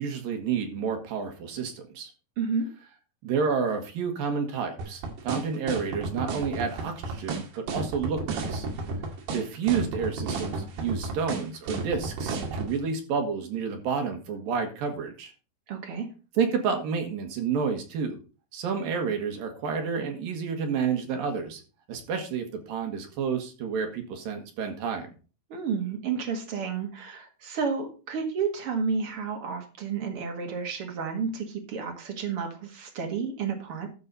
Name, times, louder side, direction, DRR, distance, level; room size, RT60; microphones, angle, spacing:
voice 1, 0.0-2.1 3.2-8.7 9.3-15.3 16.4-18.2 18.5-21.6 21.9-25.1, right 6 dB, 65° right, 4 dB, 3.1 m, -30 dB
voice 2, 2.4-2.7 15.7-16.1 25.5-33.9, right 5 dB, 45° right, 4 dB, 2.0 m, -31 dB
sound 1, 4.8-12.7, right 3 dB, 85° right, 4.1 m, -31 dB
12.5 x 6.9 x 4.1 m, 0.34 s
omnidirectional pair, 4.6 m